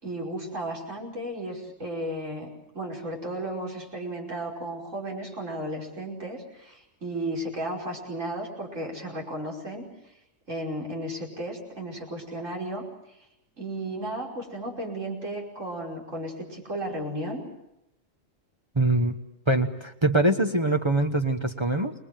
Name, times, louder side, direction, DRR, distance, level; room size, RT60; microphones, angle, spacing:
voice 1, 0.0-2.5 2.7-10.1 10.5-13.2 13.6-17.4, right 1 dB, 80° right, -1 dB, 5.7 m, -34 dB
voice 2, 18.7-19.2 19.5-21.9, right 2 dB, 25° right, 5 dB, 1.3 m, -23 dB
28.0 x 21.5 x 7.6 m, 0.86 s
omnidirectional pair, 1.3 m